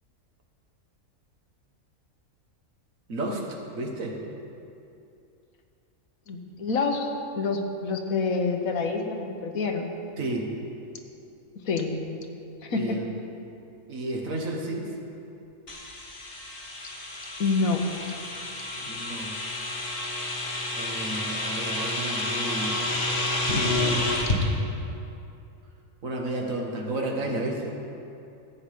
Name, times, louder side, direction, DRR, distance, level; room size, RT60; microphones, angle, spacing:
voice 1, 3.1-4.2 10.2-10.5 12.7-13.1 13.9-14.9 18.8-19.3 20.7-22.9 26.0-27.8, right 2 dB, 70° right, 1 dB, 1.7 m, -32 dB
voice 2, 6.3-7.1 7.3-9.9 11.7-12.0 12.6-13.0 17.4-17.8, left 4 dB, 75° left, 4 dB, 1.5 m, -27 dB
sound 1, 15.7-24.4, left 2 dB, 40° left, 1.4 m, -29 dB
14.5 x 4.9 x 8.5 m, 2.7 s
omnidirectional pair, 1.5 m